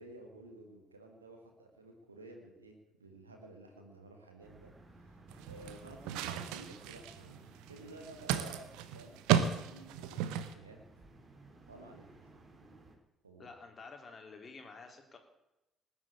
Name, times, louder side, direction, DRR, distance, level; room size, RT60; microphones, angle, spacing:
voice 1, 0.0-5.2 5.5-10.2 10.5-10.8 11.7-12.1 13.2-13.5, right 2 dB, 85° right, 3 dB, 1.7 m, -53 dB
sound 1, 4.4-13.0, right 2 dB, 30° right, 3.1 m, -58 dB
sound 2, 5.3-10.5, right 9 dB, 65° right, 1.0 m, -34 dB
voice 2, 13.4-15.2, left 4 dB, 35° left, 4 dB, 3.4 m, -50 dB
19.0 x 7.9 x 8.6 m, 0.91 s
figure-of-eight pair, 45°, 0 cm